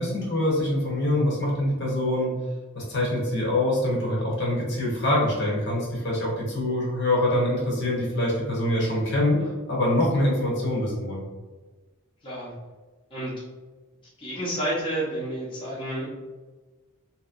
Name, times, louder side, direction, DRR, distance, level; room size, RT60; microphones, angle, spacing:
voice 1, 0.0-2.3 2.7-9.4 9.7-11.2, left 1 dB, 55° left, -4 dB, 1.0 m, -24 dB
voice 2, 14.2-16.0, right 1 dB, 25° left, -8 dB, 0.8 m, -30 dB
2.9 x 2.9 x 2.5 m, 1.3 s
head